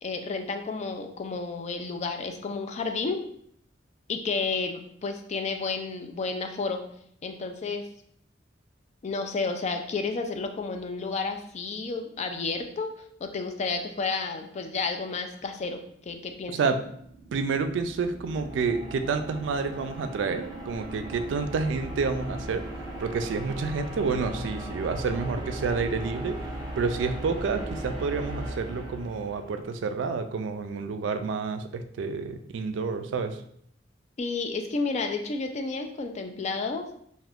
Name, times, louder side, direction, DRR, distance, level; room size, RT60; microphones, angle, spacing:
voice 1, 0.0-3.2 4.1-6.8 7.2-7.9 9.0-12.9 13.2-16.6 34.2-36.9, left 4 dB, 35° left, 6 dB, 0.3 m, -31 dB
sound 1, 16.8-29.8, right 1 dB, 25° right, 0.7 m, -38 dB
voice 2, 17.3-22.6 23.0-33.4, right 4 dB, 75° right, 8 dB, 0.3 m, -29 dB
2.6 x 2.4 x 3.4 m, 0.67 s
head